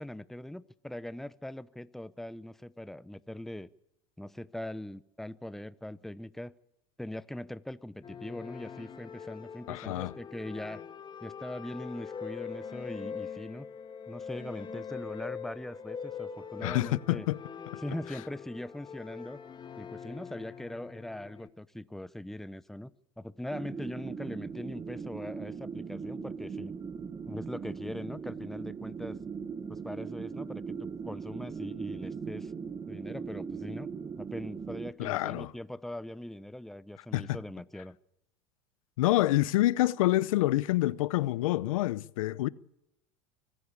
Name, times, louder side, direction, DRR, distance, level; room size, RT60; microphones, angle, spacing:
voice 1, 0.0-3.7 4.2-6.5 7.0-10.8 11.2-13.7 14.1-17.3 17.8-19.4 19.8-22.9 23.2-26.7 27.3-29.2 29.7-32.5 32.9-33.9 34.2-38.0, left 1 dB, ahead, 0.8 m, -41 dB
sound 1, 8.0-21.5, left 6 dB, 25° left, 1.8 m, -43 dB
voice 2, 9.7-10.1 16.6-17.4 35.0-35.5 37.1-37.4 39.0-42.5, left 16 dB, 80° left, 0.7 m, -27 dB
sound 2, 23.5-34.9, right 6 dB, 20° right, 1.2 m, -39 dB
24.5 x 16.0 x 8.5 m
hypercardioid pair, 95°, 17 cm